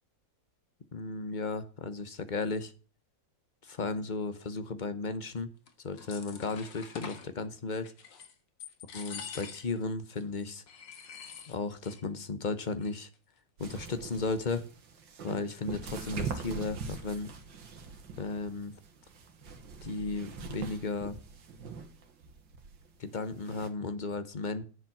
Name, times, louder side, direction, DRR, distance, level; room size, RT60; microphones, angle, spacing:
voice 1, 0.9-2.7 3.6-5.5 5.8-7.9 8.9-10.6 11.5-13.1 13.6-14.6 15.2-17.3 18.2-18.7 19.8-21.2 23.0-24.6, left 3 dB, 30° left, 11 dB, 0.9 m, -35 dB
sound 1, 5.7-7.3 7.8-8.3 8.6-9.8 10.1-10.2 10.7-12.0 12.3-12.4 12.6-13.1, left 6 dB, 80° left, 2.2 m, -45 dB
sound 2, 13.6-23.7, right 5 dB, 85° right, 2.3 m, -43 dB
10.5 x 7.4 x 5.9 m, 0.36 s
omnidirectional pair, 2.0 m